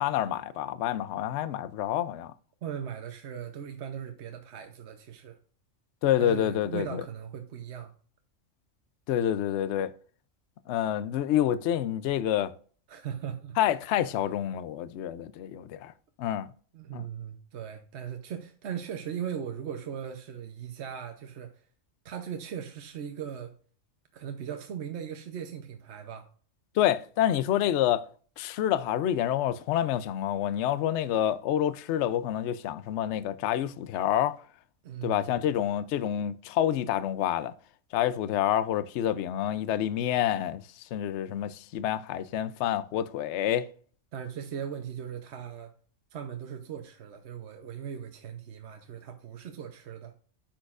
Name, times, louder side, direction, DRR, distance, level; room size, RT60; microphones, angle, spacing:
voice 1, 0.0-2.3 6.0-7.0 9.1-9.9 10.7-12.5 13.6-15.9 16.2-16.5 16.9-17.1 26.8-28.1 28.4-34.4 35.0-37.5 37.9-40.6 40.9-43.7, left 11 dB, 65° left, 0.8 m, -28 dB
voice 2, 2.6-5.4 6.2-7.9 12.9-13.6 16.7-21.5 22.0-23.5 24.1-26.3 34.8-35.4 44.1-45.7 46.1-50.1, right 8 dB, 60° right, 1.0 m, -38 dB
10.0 x 6.3 x 2.4 m
omnidirectional pair, 1.3 m